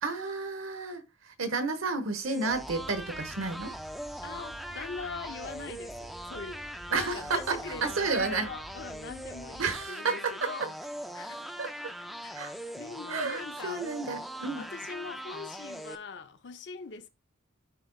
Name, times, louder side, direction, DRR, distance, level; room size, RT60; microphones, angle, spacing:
voice 1, 0.0-3.7 6.9-8.5 9.6-10.5 11.6-11.9 12.3-12.5 13.1-14.7, right 4 dB, 85° right, 1.1 m, -31 dB
sound 1, 2.2-16.0, equal, ahead, 0.3 m, -41 dB
sound 2, 2.5-9.8, right 1 dB, 40° right, 1.4 m, -51 dB
voice 2, 4.2-10.7 11.1-11.6 12.2-13.9 14.5-17.1, left 5 dB, 55° left, 0.6 m, -42 dB
11.0 x 3.9 x 2.3 m
head